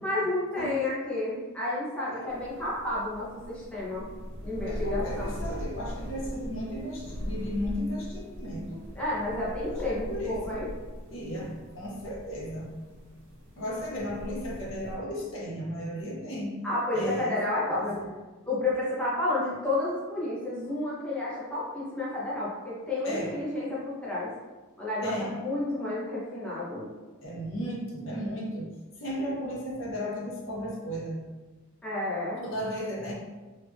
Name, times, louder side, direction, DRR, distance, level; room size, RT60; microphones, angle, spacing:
voice 1, 0.0-4.1 4.4-5.4 8.9-10.7 16.6-18.0 18.4-24.3 24.8-26.9 31.8-32.4, left 2 dB, 5° left, -8 dB, 0.6 m, -31 dB
voice 2, 0.6-0.9 2.1-2.3 4.7-8.8 9.9-10.6 11.1-12.7 13.6-16.6 16.9-17.4 17.6-18.1 23.0-23.4 25.0-25.4 27.2-28.7 29.0-31.2 32.4-33.1, equal, 55° left, -3 dB, 0.7 m, -35 dB
sound 1, 2.3-15.0, equal, 55° right, 0.7 m, -40 dB
3.1 x 2.4 x 3.4 m, 1.3 s
head